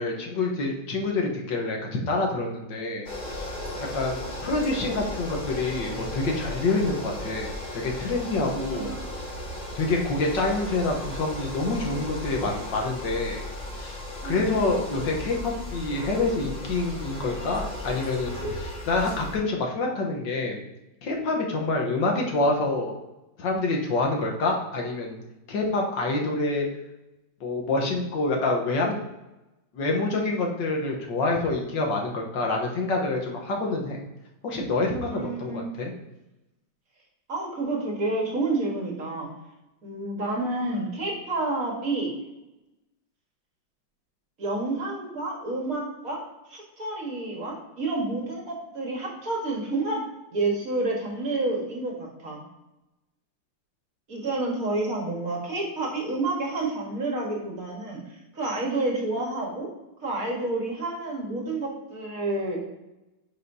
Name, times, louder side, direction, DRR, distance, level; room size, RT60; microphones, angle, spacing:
voice 1, 0.0-3.5 3.9-8.9 9.8-13.4 13.7-14.0 14.2-20.6 21.0-23.0 23.4-25.2 25.5-26.7 27.4-28.9 29.7-34.0 34.4-35.9, left 2 dB, 75° left, 0 dB, 1.8 m, -27 dB
sound 1, 3.1-19.4, left 1 dB, 45° left, 2.0 m, -35 dB
voice 2, 8.5-9.1 14.2-14.6 35.1-35.7 37.3-39.3 39.8-42.1 44.4-46.2 46.5-50.0 50.3-52.4 54.1-58.0 58.3-59.7 60.0-62.6, right 2 dB, 50° right, -1 dB, 1.9 m, -29 dB
10.0 x 5.2 x 2.7 m, 0.98 s
omnidirectional pair, 2.0 m